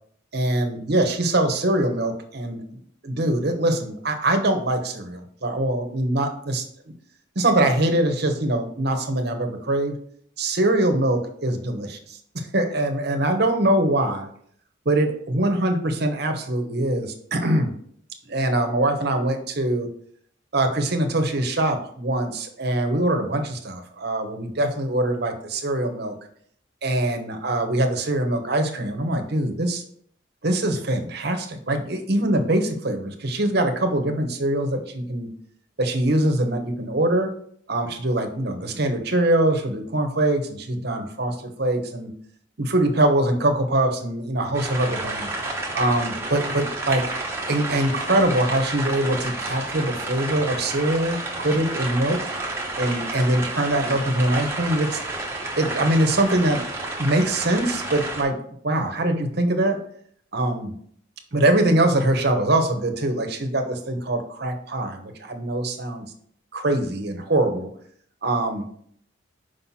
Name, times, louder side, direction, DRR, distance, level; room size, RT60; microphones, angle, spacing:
voice 1, 0.3-2.6 3.0-6.6 7.4-9.9 10.4-14.3 14.8-17.7 18.3-19.9 20.5-26.1 26.8-29.8 30.4-35.3 35.8-37.3 37.7-42.1 42.6-45.3 45.7-47.0 47.5-52.2 52.8-55.0 55.6-56.6 57.0-58.4 58.6-59.8 60.3-60.7 61.3-66.1 66.5-67.7 68.2-68.6, right 1 dB, 55° right, 5 dB, 1.0 m, -23 dB
sound 1, 44.5-58.2, right 2 dB, 15° right, 1.0 m, -30 dB
5.7 x 5.2 x 4.2 m, 0.62 s
head